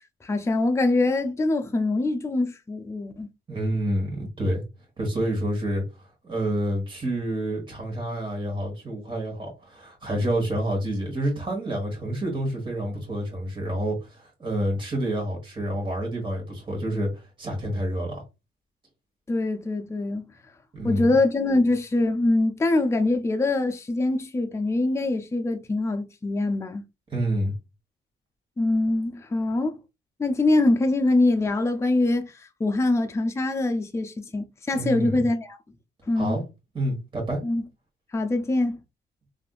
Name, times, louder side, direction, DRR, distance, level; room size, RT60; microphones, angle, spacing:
voice 1, 0.2-3.3 19.3-20.3 20.8-26.8 28.6-29.8 30.2-35.6 36.1-36.4 37.4-37.6 38.1-38.8, left 2 dB, 15° left, 0.5 m, -24 dB
voice 2, 3.5-4.6 5.0-5.8 6.2-18.2 20.7-21.1 27.1-27.5 34.8-35.3 36.1-36.4 36.7-37.4, right 1 dB, 25° right, 1.4 m, -28 dB
3.4 x 2.5 x 2.3 m
cardioid pair, 90°, 20 cm